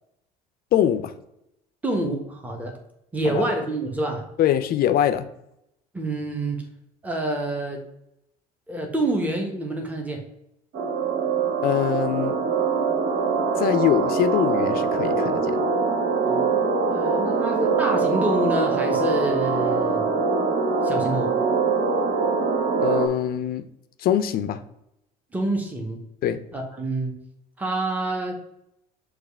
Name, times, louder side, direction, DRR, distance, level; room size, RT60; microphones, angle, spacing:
voice 1, 0.7-1.1 3.2-3.4 4.4-5.3 11.6-12.4 13.6-15.7 22.8-23.7 24.0-24.6 26.2-26.4, left 10 dB, 50° left, 11 dB, 0.5 m, -23 dB
voice 2, 1.8-2.8 3.1-4.3 5.9-6.6 7.0-7.8 8.7-10.2 16.2-16.6 16.9-20.1 20.8-21.3 25.3-26.0 26.5-27.1 27.6-28.4, right 2 dB, 10° right, 2 dB, 1.0 m, -27 dB
sound 1, 10.7-23.1, right 4 dB, 55° right, 0.9 m, -23 dB
6.4 x 2.5 x 3.4 m, 0.81 s
hypercardioid pair, 70°, 19 cm